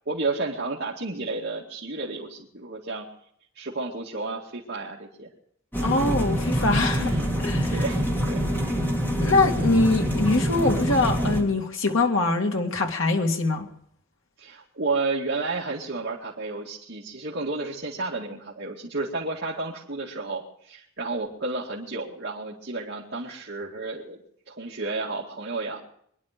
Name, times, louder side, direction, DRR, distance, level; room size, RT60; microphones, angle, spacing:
voice 1, 0.1-3.1 3.5-5.3 6.9-7.3 7.7-8.5 14.4-24.2 24.5-25.8, right 3 dB, 55° right, -5 dB, 2.3 m, -31 dB
sound 1, 5.7-11.4, equal, 10° left, 3.3 m, -25 dB
voice 2, 5.8-7.8 9.2-13.7, left 3 dB, 65° left, 2 dB, 2.1 m, -23 dB
25.0 x 11.0 x 5.1 m, 0.68 s
head